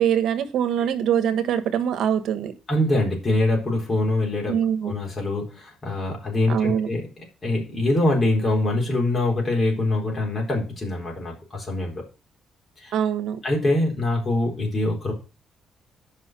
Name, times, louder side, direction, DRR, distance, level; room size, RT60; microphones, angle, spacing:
voice 1, 0.0-2.5 4.5-4.9 6.5-6.9 12.9-13.4, right 9 dB, 80° right, 10 dB, 1.3 m, -23 dB
voice 2, 2.7-4.5 4.8-7.1 7.4-12.0 12.8-12.9 13.4-15.1, left 2 dB, 35° left, -1 dB, 4.1 m, -24 dB
7.9 x 5.5 x 6.0 m, 0.33 s
cardioid pair, 90°, 0 cm